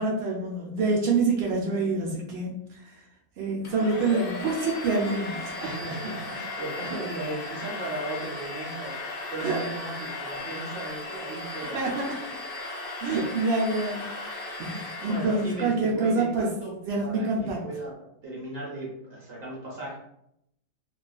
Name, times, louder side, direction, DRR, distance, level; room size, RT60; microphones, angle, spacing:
voice 1, 0.0-3.1 3.4-5.5 9.4-9.6 11.7-12.2 13.0-14.1 14.6-16.5 16.9-17.6, right 3 dB, 80° right, -2 dB, 0.5 m, -26 dB
Domestic sounds home sounds, 3.6-15.7, left 2 dB, 65° left, 0.8 m, -36 dB
voice 2, 5.6-11.9 15.0-16.8 17.0-20.0, right 2 dB, 50° right, -4 dB, 0.8 m, -36 dB
2.4 x 2.3 x 2.3 m, 0.78 s
omnidirectional pair, 1.6 m